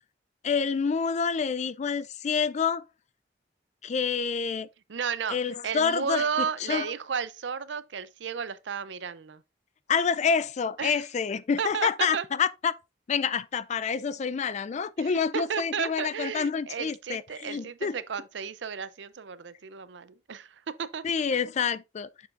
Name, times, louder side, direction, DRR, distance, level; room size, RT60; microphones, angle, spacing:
voice 1, 0.4-2.8 3.8-4.7 5.3-6.9 9.9-12.7 13.1-18.0 21.0-22.1, left 6 dB, 40° left, 0.4 m, -28 dB
voice 2, 4.9-5.4 5.6-9.4 10.8-11.0 11.6-12.2 13.8-14.0 15.0-21.0, right 6 dB, 80° right, 0.6 m, -33 dB
6.8 x 6.3 x 2.5 m
head